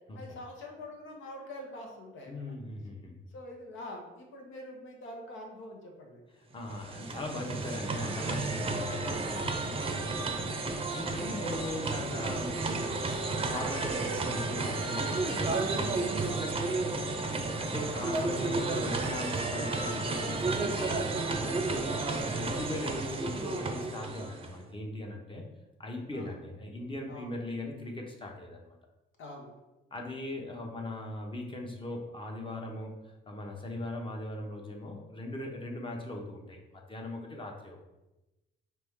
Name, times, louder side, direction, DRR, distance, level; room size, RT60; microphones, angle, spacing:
voice 1, 0.1-2.3 3.3-6.2 26.1-26.3 27.1-27.3 29.2-29.5, left 1 dB, 75° left, 1 dB, 1.0 m, -45 dB
voice 2, 2.3-3.1 6.3-16.9 17.4-25.4 25.8-28.8 29.9-37.8, left 1 dB, 25° left, 1 dB, 0.9 m, -40 dB
sound 1, 6.6-24.6, right 3 dB, 30° right, 0.6 m, -32 dB
4.2 x 3.1 x 3.6 m, 1.0 s
cardioid pair, 90°, 20 cm